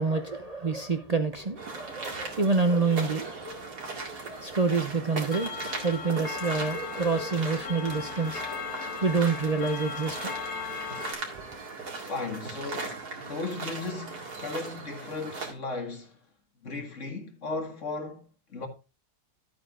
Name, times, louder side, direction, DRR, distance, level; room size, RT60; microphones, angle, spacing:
voice 1, 0.0-10.3, right 4 dB, 40° right, 0.5 m, -28 dB
sound 1, 1.6-15.5, right 3 dB, 85° right, 2.7 m, -38 dB
Clock, 5.3-11.1, left 5 dB, 80° left, 2.3 m, -37 dB
voice 2, 12.1-16.2 16.6-18.7, left 3 dB, 50° left, 2.1 m, -36 dB
12.5 x 8.6 x 2.5 m
omnidirectional pair, 1.7 m